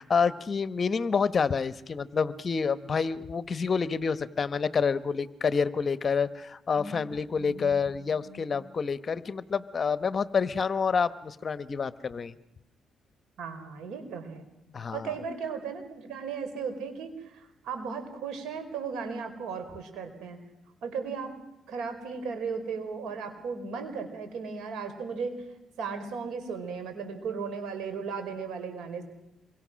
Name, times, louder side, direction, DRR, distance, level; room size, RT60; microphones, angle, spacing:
voice 1, 0.0-12.4 14.7-15.1, left 5 dB, 40° left, 15 dB, 1.0 m, -28 dB
voice 2, 7.4-7.9 8.3-8.5 13.4-14.4 14.9-20.4 20.8-21.3 21.7-25.4 25.8-29.0, right 5 dB, 80° right, 7 dB, 4.7 m, -36 dB
27.0 x 23.5 x 6.3 m, 0.88 s
cardioid pair, 90°, 0 cm